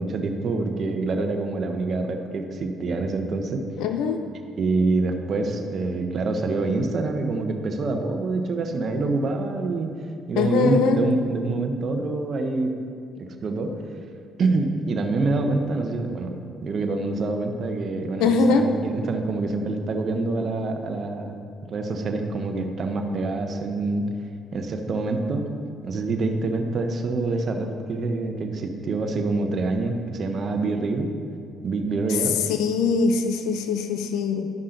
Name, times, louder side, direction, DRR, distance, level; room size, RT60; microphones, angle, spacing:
voice 1, 0.0-3.6 4.6-10.0 10.3-12.7 13.2-13.8 14.4-16.3 16.6-21.4 21.7-24.0 24.5-25.5 25.8-31.1 31.6-32.4, right 3 dB, 55° right, 4 dB, 1.0 m, -26 dB
voice 2, 3.8-4.2 10.4-11.0 18.2-18.7 32.5-34.5, left 4 dB, 85° left, 6 dB, 0.6 m, -22 dB
12.0 x 5.5 x 3.9 m, 2.3 s
cardioid pair, 80°, 0 cm